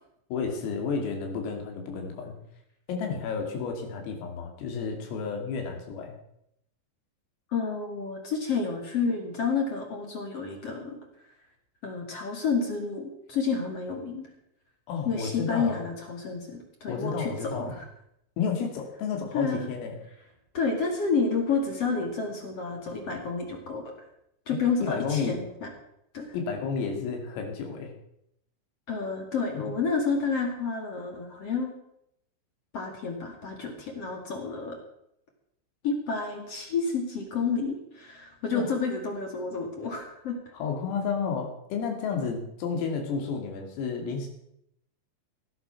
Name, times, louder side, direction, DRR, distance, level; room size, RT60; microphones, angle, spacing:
voice 1, 0.3-2.3 2.9-6.1 14.9-15.8 16.9-17.8 18.4-20.0 24.5-25.4 26.3-27.9 29.6-29.7 38.5-38.7 40.5-44.3, left 5 dB, 85° left, 3 dB, 5.2 m, -31 dB
voice 2, 7.5-11.0 11.8-14.3 15.0-17.8 19.3-19.6 20.5-23.8 24.5-25.7 26.1-26.3 28.9-31.7 32.7-34.8 35.8-40.4, left 4 dB, 45° left, 2 dB, 2.1 m, -30 dB
16.5 x 10.5 x 5.9 m, 0.77 s
omnidirectional pair, 5.9 m